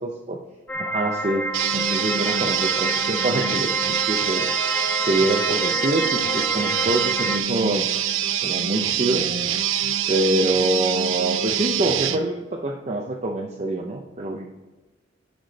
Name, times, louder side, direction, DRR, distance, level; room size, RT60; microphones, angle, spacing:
voice 1, 0.0-0.4 0.8-4.5 5.1-7.9 8.4-9.3 10.1-14.5, right 2 dB, 35° right, 2 dB, 0.6 m, -25 dB
sound 1, 0.7-7.4, equal, 10° left, 0.5 m, -28 dB
sound 2, 1.5-12.2, right 9 dB, 85° right, 0.6 m, -25 dB
10.5 x 5.0 x 4.0 m, 1.2 s
head